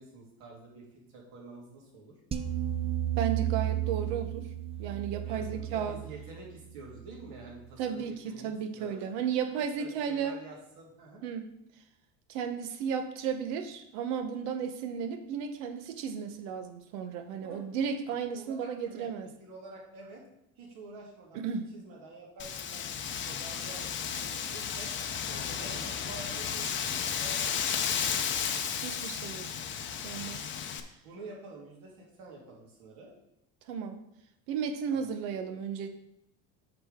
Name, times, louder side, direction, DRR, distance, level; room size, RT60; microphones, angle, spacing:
voice 1, 0.0-2.2 5.2-9.0 9.8-11.2 17.4-17.9 18.3-19.1 19.4-20.2 20.6-24.9 25.2-28.1 30.8-33.1 34.9-35.1, right 2 dB, 70° right, -2 dB, 2.8 m, -48 dB
sound 1, 2.3-7.5, right 12 dB, 20° right, 0.4 m, -33 dB
voice 2, 3.2-4.5 4.8-6.0 7.8-10.4 11.2-11.5 12.3-19.3 21.3-21.7 28.8-29.5 30.0-30.5 33.7-34.0 34.5-35.9, right 7 dB, 90° right, 9 dB, 1.0 m, -34 dB
Wind, 22.4-30.8, left 8 dB, 35° left, 0.6 m, -33 dB
7.8 x 6.1 x 3.6 m, 0.80 s
cardioid pair, 130°, 35 cm